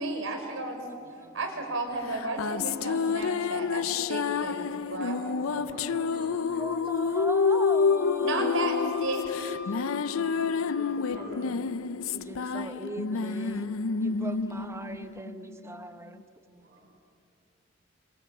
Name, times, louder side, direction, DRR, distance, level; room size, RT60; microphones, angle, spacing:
voice 1, 0.0-0.8 1.3-3.8 4.1-5.2 8.2-9.5, right 2 dB, 70° right, 4 dB, 5.0 m, -33 dB
voice 2, 1.0-1.6 3.1-7.3 9.7-12.2 12.4-12.9 16.5-16.9, right 1 dB, 50° right, -3 dB, 7.5 m, -51 dB
sound 1, 2.1-15.8, left 5 dB, 90° left, 0.6 m, -29 dB
voice 3, 5.3-6.1 6.6-8.9 10.8-10.9 11.3-11.5 12.1-13.7 14.0-16.2, right 1 dB, 15° right, 9 dB, 1.2 m, -39 dB
Wind instrument woodwind instrument, 7.7-11.4, left 5 dB, 55° left, 1.4 m, -45 dB
27.0 x 26.0 x 7.2 m, 2.4 s
head